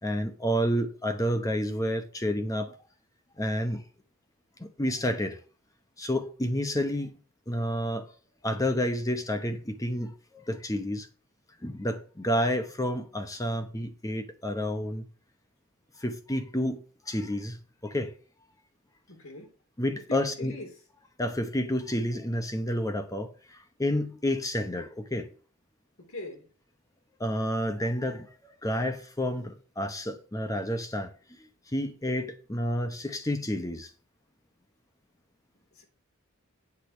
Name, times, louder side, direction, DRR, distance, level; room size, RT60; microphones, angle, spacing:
voice 1, 0.0-2.7 3.4-3.8 4.6-5.4 6.0-7.1 7.5-8.1 8.4-11.1 11.6-15.1 16.0-18.1 19.8-20.5 21.2-25.3 27.2-31.1 31.4-31.5 31.7-33.9, equal, 15° left, 0.9 m, -30 dB
voice 2, 19.1-19.5 20.1-20.7 26.0-26.5 35.7-35.9, left 2 dB, 70° left, 3.4 m, -42 dB
8.4 x 4.9 x 7.3 m
head